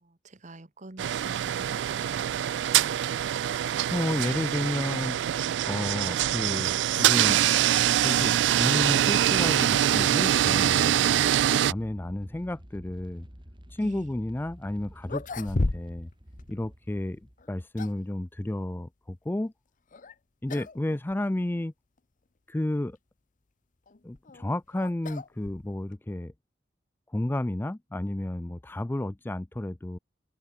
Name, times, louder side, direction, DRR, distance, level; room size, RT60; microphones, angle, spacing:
voice 1, 0.0-2.2 13.8-14.1, right 2 dB, 45° right, 1.5 m, -47 dB
sound 1, 1.0-11.7, right 11 dB, 85° right, 0.3 m, -24 dB
voice 2, 3.9-5.2 5.7-7.4 8.0-13.3 13.7-16.1 16.5-19.5 20.4-21.7 22.5-23.0 24.0-26.3 27.1-30.0, left 1 dB, 10° left, 0.4 m, -32 dB
sound 2, 7.9-17.9, equal, 30° right, 5.6 m, -50 dB
sound 3, 14.5-14.6 15.0-16.1 16.4-16.5 17.4-18.1 19.9-20.2 20.5-20.8 21.1-21.2 22.0-22.1 23.9-26.0, left 2 dB, 50° left, 0.8 m, -34 dB
open air
head